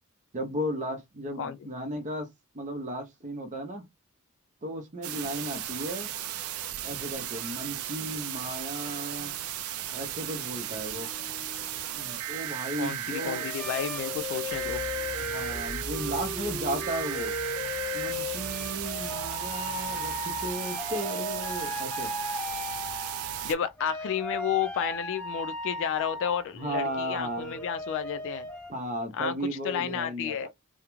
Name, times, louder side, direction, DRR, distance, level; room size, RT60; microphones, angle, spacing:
voice 1, 0.3-3.8 4.6-6.1 6.8-9.4 9.9-11.1 11.9-13.5 15.2-17.3 17.9-22.1 26.6-27.6 28.7-30.5, equal, 35° right, 0.6 m, -35 dB
sound 1, 5.0-23.6, right 11 dB, 75° right, 0.4 m, -35 dB
sound 2, 10.7-11.9 13.2-23.5 23.8-28.7, left 3 dB, 10° left, 0.6 m, -37 dB
voice 2, 12.8-14.8 23.4-28.5 29.1-29.3 29.6-30.5, left 8 dB, 60° left, 0.3 m, -31 dB
sound 3, 14.5-20.6, right 1 dB, 55° right, 1.0 m, -44 dB
2.3 x 2.1 x 3.0 m
head